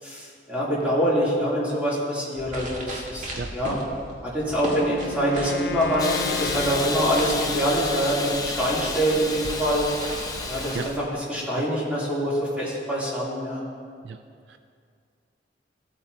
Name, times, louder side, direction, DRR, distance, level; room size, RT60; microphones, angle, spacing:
voice 1, 0.0-3.8 4.2-9.9 10.5-13.6, equal, 10° right, -8 dB, 2.8 m, -25 dB
sound 1, 2.3-11.1, right 1 dB, 45° right, 1.6 m, -39 dB
voice 2, 3.4-3.6 10.7-10.9 11.6-11.7 14.0-14.2 14.5-14.6, right 4 dB, 70° right, 8 dB, 0.4 m, -33 dB
Wind instrument woodwind instrument, 4.6-7.9, left 6 dB, 70° left, 0.4 m, -35 dB
Hiss, 6.0-11.0, left 3 dB, 20° left, 0.7 m, -31 dB
15.5 x 8.8 x 2.8 m, 2.2 s
head